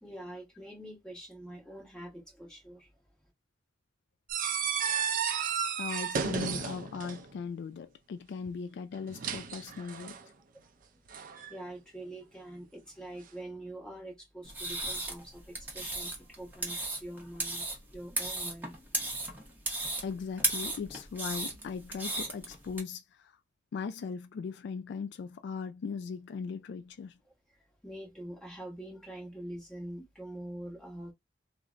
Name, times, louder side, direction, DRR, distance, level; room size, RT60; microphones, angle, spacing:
voice 1, 0.0-2.9 11.5-18.7 27.8-31.1, right 1 dB, 5° left, 1.2 m, -45 dB
sound 1, 4.3-7.3 8.9-10.2 11.1-11.5, right 6 dB, 50° right, 0.4 m, -33 dB
voice 2, 5.8-10.2 20.0-23.3 23.7-27.2, left 5 dB, 65° left, 0.3 m, -39 dB
sound 2, 14.4-22.8, right 2 dB, 10° right, 0.9 m, -36 dB
3.9 x 2.0 x 2.4 m
head